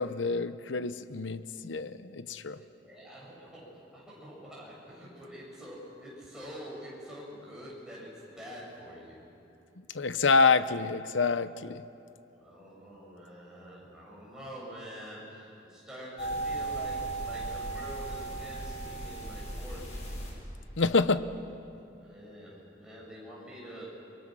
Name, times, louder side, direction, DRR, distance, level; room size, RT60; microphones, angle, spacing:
voice 1, 0.0-2.6 9.9-11.8 20.8-21.3, left 4 dB, 85° left, 13 dB, 0.8 m, -27 dB
voice 2, 2.5-9.3 12.3-20.0 22.0-23.9, equal, 5° right, -6 dB, 7.4 m, -46 dB
sound 1, 16.2-20.3, right 2 dB, 40° left, 5.7 m, -36 dB
30.0 x 22.5 x 6.2 m, 2.7 s
head